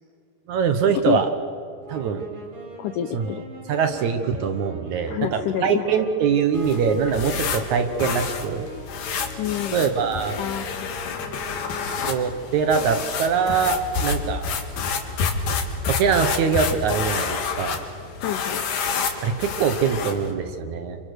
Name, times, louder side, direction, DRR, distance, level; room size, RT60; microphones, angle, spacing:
voice 1, 0.5-1.3 1.9-2.2 3.1-3.3 3.7-8.7 9.7-10.4 12.1-14.5 15.9-17.8 19.2-21.0, right 6 dB, 70° right, 8 dB, 1.8 m, -23 dB
sound 1, 1.8-12.2, left 1 dB, 45° right, 6.7 m, -40 dB
voice 2, 2.8-3.4 5.1-5.9 9.4-9.8 10.4-11.2 18.2-18.6, left 10 dB, 90° left, 9 dB, 1.8 m, -28 dB
sound 2, 6.5-20.3, left 5 dB, 60° left, 3.6 m, -29 dB
29.0 x 26.5 x 6.6 m, 2.4 s
omnidirectional pair, 4.7 m